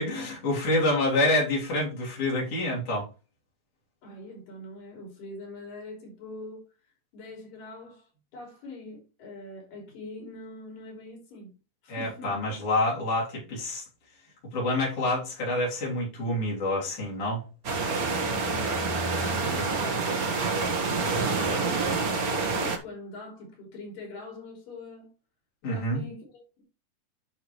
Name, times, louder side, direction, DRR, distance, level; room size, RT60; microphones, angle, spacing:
voice 1, 0.0-3.1 11.9-13.8 14.5-17.4 25.6-26.0, left 1 dB, 45° left, 4.1 m, -27 dB
voice 2, 4.0-6.6 7.1-11.5 11.8-12.4 18.0-22.0 22.3-25.1 25.6-26.6, left 1 dB, 80° left, 4.8 m, -43 dB
sound 1, 17.6-22.8, right 4 dB, 65° right, 0.8 m, -27 dB
10.5 x 5.6 x 3.2 m
omnidirectional pair, 3.9 m